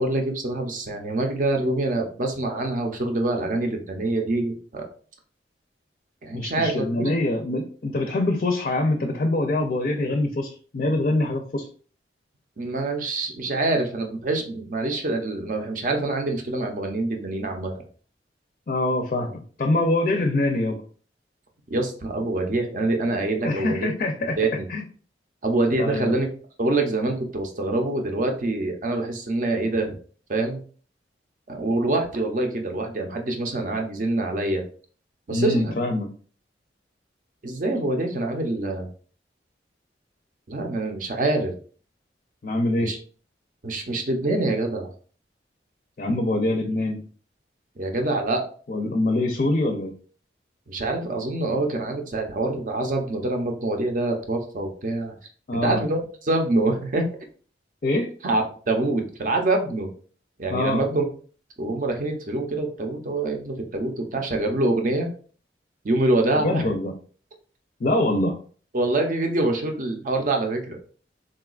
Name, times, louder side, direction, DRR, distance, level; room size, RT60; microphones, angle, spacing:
voice 1, 0.0-4.8 6.2-7.0 12.6-17.7 21.7-23.9 24.4-24.7 25.4-26.3 26.6-29.9 30.3-30.6 31.5-34.6 35.3-35.7 37.4-38.9 40.5-41.5 42.8-43.0 43.6-44.9 47.8-48.4 50.7-55.1 55.6-57.1 58.2-59.9 60.4-61.1 61.6-65.1 65.8-66.7 68.7-70.8, right 2 dB, 45° right, 3 dB, 0.6 m, -25 dB
voice 2, 6.3-11.6 18.7-20.8 23.4-24.4 24.7-24.8 25.8-26.2 35.3-36.1 42.4-42.9 46.0-47.0 48.7-49.9 55.5-55.8 57.8-58.1 60.5-60.8 66.3-66.9 67.8-68.3, left 2 dB, 45° left, 3 dB, 0.4 m, -24 dB
3.8 x 2.2 x 2.3 m, 0.42 s
head